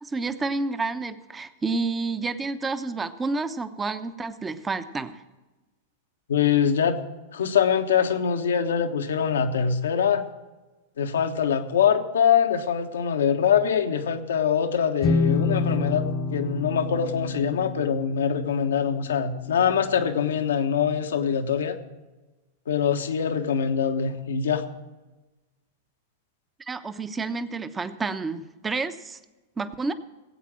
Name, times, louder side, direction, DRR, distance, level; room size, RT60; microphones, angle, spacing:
voice 1, 0.0-5.2 26.6-29.2 29.6-29.9, right 3 dB, 15° right, 11 dB, 0.9 m, -29 dB
voice 2, 6.3-7.0 7.3-10.2 11.0-16.0 16.3-21.8 22.7-24.6, left 7 dB, 80° left, 7 dB, 1.3 m, -23 dB
sound 1, 15.0-20.6, left 3 dB, 35° left, 1.0 m, -29 dB
18.0 x 8.4 x 6.2 m, 1.2 s
hypercardioid pair, 105°, 0 cm